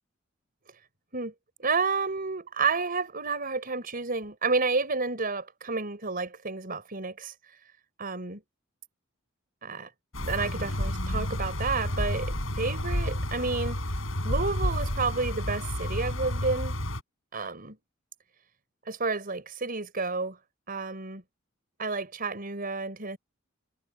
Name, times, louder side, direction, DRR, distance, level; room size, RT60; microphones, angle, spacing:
voice 1, 1.6-7.3 8.0-8.4 9.6-9.9 10.2-13.8 14.2-16.7 17.3-17.8 18.9-20.4 20.7-21.2 21.8-23.2, right 4 dB, 45° right, 4.7 m, -30 dB
sound 1, 10.1-17.0, left 1 dB, 80° left, 7.8 m, -30 dB
head